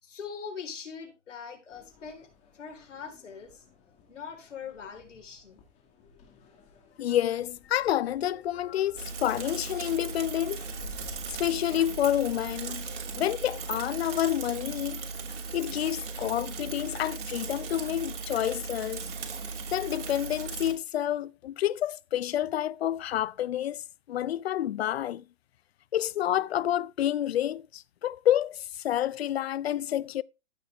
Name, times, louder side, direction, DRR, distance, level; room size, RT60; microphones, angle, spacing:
voice 1, 0.0-3.6 4.1-5.6, left 6 dB, 80° left, 4.1 m, -42 dB
sound 1, 1.7-13.2, left 3 dB, 20° left, 2.2 m, -54 dB
voice 2, 7.0-10.6 11.0-15.1 15.5-19.1 19.7-25.2 25.9-30.2, left 12 dB, 60° left, 0.5 m, -29 dB
Bicycle / Mechanisms, 8.9-20.7, right 4 dB, 70° right, 2.9 m, -37 dB
14.5 x 6.5 x 3.5 m
hypercardioid pair, 160°, 36 cm